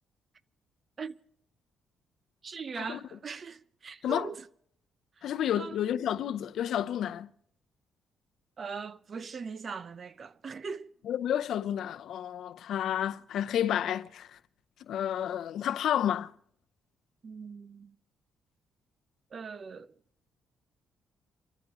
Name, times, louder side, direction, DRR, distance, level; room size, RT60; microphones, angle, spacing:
voice 1, 2.4-4.5 5.2-5.3 5.6-5.8 8.6-10.9 17.2-18.0 19.3-19.9, right 5 dB, 45° right, 0.6 m, -40 dB
voice 2, 5.2-7.3 11.1-14.3 14.9-16.3, left 10 dB, 75° left, 0.6 m, -30 dB
28.0 x 14.0 x 3.0 m
cardioid pair, 90°, 0 cm